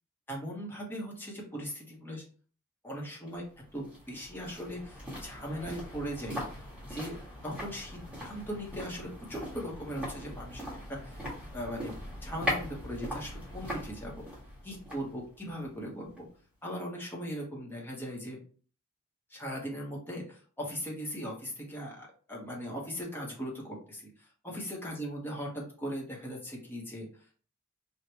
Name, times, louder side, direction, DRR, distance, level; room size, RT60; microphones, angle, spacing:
voice 1, 0.3-2.2 2.8-3.4 3.7-6.5 6.9-7.2 7.4-11.2 11.5-11.9 12.2-14.2 14.6-16.2 16.6-18.4 19.3-27.1, equal, 10° left, -3 dB, 1.2 m, -39 dB
sound 1, 3.3-16.4 16.7-16.8, equal, 5° right, 1.5 m, -40 dB
5.0 x 2.5 x 2.9 m, 0.42 s
head